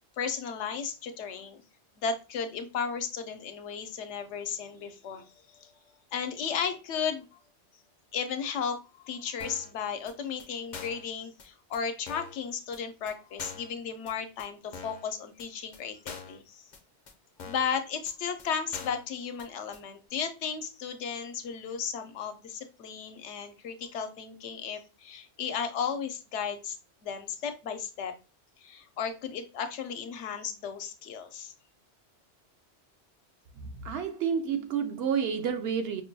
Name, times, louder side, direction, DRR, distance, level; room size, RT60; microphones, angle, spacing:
voice 1, 0.2-1.6 2.0-5.7 6.1-7.4 8.1-16.7 17.5-26.8 27.0-28.1 28.6-31.5, left 6 dB, 75° left, 0.9 m, -34 dB
sound 1, 9.4-9.7 10.1-10.2 10.4-10.5 10.7-11.1 11.4-11.5 11.7-11.8 12.1-12.4 12.7-12.8 13.1-13.2 13.4-13.7 14.1-14.2 14.4-14.5 14.7-15.0 15.4-15.5 15.7-15.8 16.1-16.4 16.7-16.8 17.1-17.2 17.4-17.7 18.1-18.2 18.4-18.5 18.7-19.1 19.4-19.5 19.7-19.8, left 5 dB, 50° left, 0.6 m, -43 dB
voice 2, 33.6-36.0, right 7 dB, 65° right, 0.8 m, -30 dB
5.3 x 2.2 x 2.6 m
omnidirectional pair, 1.2 m